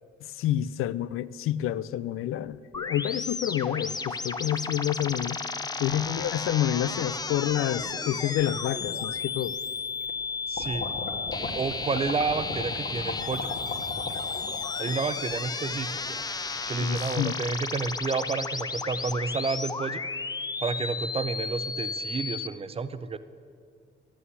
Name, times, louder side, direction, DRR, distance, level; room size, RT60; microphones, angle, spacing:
voice 1, 0.2-5.4 5.8-9.6 16.8-17.4, left 12 dB, 90° left, 17 dB, 0.4 m, -29 dB
sound 1, 2.7-22.5, left 4 dB, 20° left, 0.5 m, -33 dB
sound 2, 5.9-7.0 7.8-7.9 9.1-9.2 9.6-10.2 10.5-17.0, left 4 dB, 55° left, 1.7 m, -38 dB
voice 2, 10.5-10.9 11.4-13.5 14.8-16.0 16.7-20.0 20.6-23.2, right 4 dB, 30° right, 13 dB, 0.5 m, -30 dB
11.5 x 8.5 x 9.6 m, 2.2 s
cardioid pair, 125°, 21 cm